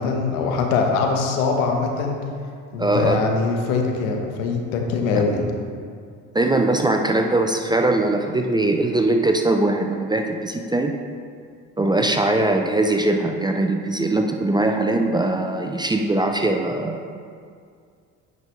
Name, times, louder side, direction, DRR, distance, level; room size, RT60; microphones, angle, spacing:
voice 1, 0.0-2.2 2.7-5.4, left 4 dB, 80° left, 2 dB, 1.1 m, -22 dB
voice 2, 2.8-3.2 5.1-5.2 6.3-10.9 11.8-17.0, right 2 dB, 10° right, 4 dB, 0.4 m, -21 dB
9.3 x 5.2 x 3.1 m, 2.2 s
hypercardioid pair, 70°, 40 cm